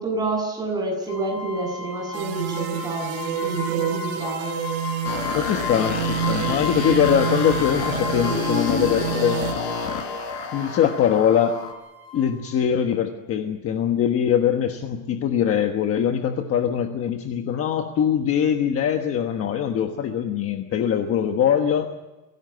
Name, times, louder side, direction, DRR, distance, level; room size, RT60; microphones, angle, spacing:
voice 1, 0.0-4.6, right 2 dB, 10° right, -1 dB, 7.7 m, -28 dB
sound 1, 1.1-12.5, left 4 dB, 85° left, 6.4 m, -34 dB
sound 2, 2.1-9.5, right 11 dB, 75° right, 3.5 m, -29 dB
sound 3, 5.0-11.7, left 6 dB, 65° left, 4.4 m, -29 dB
voice 2, 5.3-9.4 9.8-10.0 10.5-11.5 12.1-21.9, left 9 dB, 30° left, 5 dB, 1.3 m, -22 dB
24.5 x 17.0 x 9.5 m, 1.1 s
cardioid pair, 175°, 44 cm